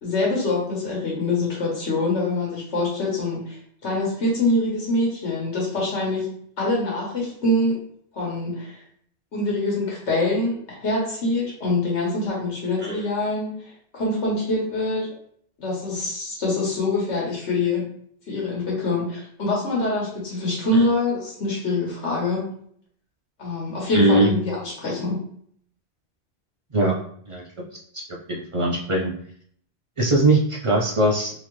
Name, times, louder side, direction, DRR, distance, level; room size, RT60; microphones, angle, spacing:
voice 1, 0.0-6.3 6.6-7.8 8.1-8.8 9.3-15.1 15.6-17.8 18.3-22.5 23.4-25.2, left 2 dB, 80° left, -4 dB, 1.4 m, -25 dB
voice 2, 23.9-24.3 26.7-26.9 27.3-27.4 28.3-29.1 30.0-31.3, right 1 dB, 45° right, -2 dB, 0.4 m, -20 dB
3.7 x 2.8 x 3.1 m, 0.63 s
omnidirectional pair, 1.2 m